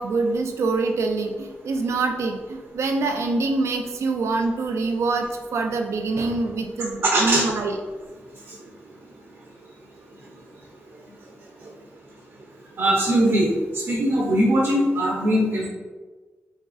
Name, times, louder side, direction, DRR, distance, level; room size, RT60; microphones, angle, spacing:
voice 1, 0.0-7.8, right 3 dB, 90° right, 4 dB, 0.4 m, -25 dB
voice 2, 7.0-7.5 12.8-13.5 13.9-15.7, right 1 dB, 60° right, -4 dB, 0.7 m, -20 dB
4.0 x 3.6 x 2.4 m, 1.3 s
wide cardioid pair, 150°, 5 cm